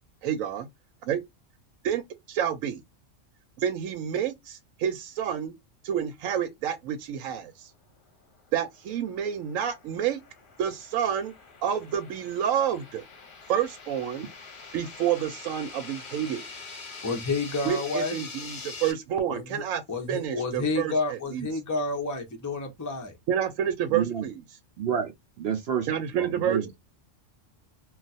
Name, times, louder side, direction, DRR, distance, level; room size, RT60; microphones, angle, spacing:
voice 1, 0.2-0.7 1.1-1.2 1.8-2.0 2.3-2.8 3.6-5.5 5.8-7.7 8.5-10.2 10.6-11.3 11.6-13.0 13.5-14.3 14.7-16.4 17.6-19.8 20.1-21.5 23.3-24.4 25.9-26.7, right 9 dB, 90° right, 1.0 m, -29 dB
sound 1, 8.5-18.9, left 4 dB, 45° left, 0.8 m, -44 dB
voice 2, 17.0-18.2 19.3-19.6 19.9-23.1, left 3 dB, 25° left, 0.4 m, -30 dB
voice 3, 23.9-24.2 24.8-25.1 25.4-25.9 26.1-26.7, right 8 dB, 65° right, 0.7 m, -29 dB
2.3 x 2.3 x 4.0 m
omnidirectional pair, 1.3 m